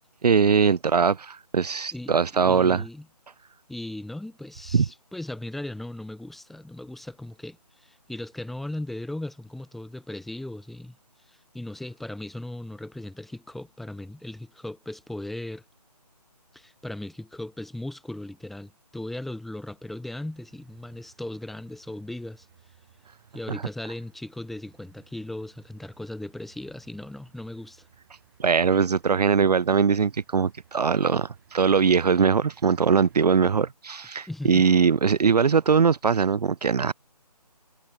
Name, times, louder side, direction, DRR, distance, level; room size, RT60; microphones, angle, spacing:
voice 1, 0.2-2.8 4.7-4.9 23.5-23.6 28.4-36.9, right 6 dB, 75° right, 0.4 m, -21 dB
voice 2, 1.9-3.1 3.7-11.0 11.3-15.6 16.5-22.5 23.3-27.8 34.3-34.7, left 1 dB, ahead, 1.1 m, -37 dB
sound 1, 20.3-33.7, right 10 dB, 30° right, 7.3 m, -59 dB
figure-of-eight pair, 155°, 21 cm